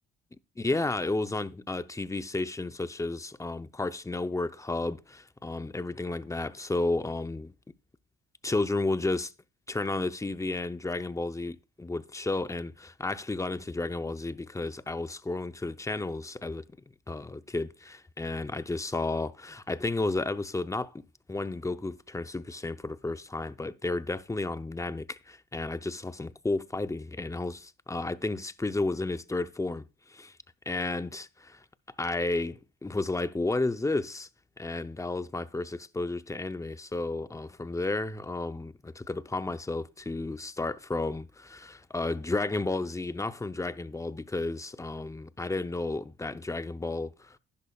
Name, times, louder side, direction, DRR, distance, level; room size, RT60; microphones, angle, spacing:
voice 1, 0.6-7.5 8.4-9.3 9.7-16.6 17.1-21.0 21.3-30.4 30.7-31.6 32.0-34.3 34.6-47.4, left 2 dB, 10° left, 0.6 m, -32 dB
11.0 x 10.5 x 2.3 m
cardioid pair, 90°, 30 cm